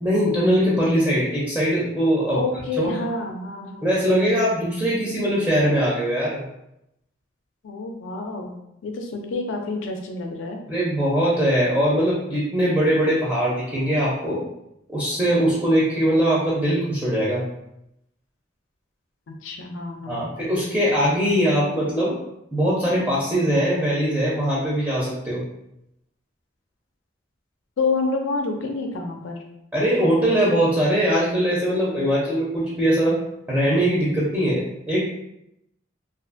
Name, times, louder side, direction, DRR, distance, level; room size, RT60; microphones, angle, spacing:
voice 1, 0.0-2.4 2.8-2.9 3.8-6.4 10.7-14.4 14.9-17.4 20.1-22.2 22.5-25.4 29.7-33.2 33.5-35.0, equal, 10° right, -7 dB, 0.4 m, -21 dB
voice 2, 2.3-3.9 7.6-8.6 8.8-10.6 19.3-20.3 27.8-29.4, left 3 dB, 75° left, 2 dB, 0.4 m, -28 dB
2.4 x 2.4 x 2.4 m, 0.82 s
head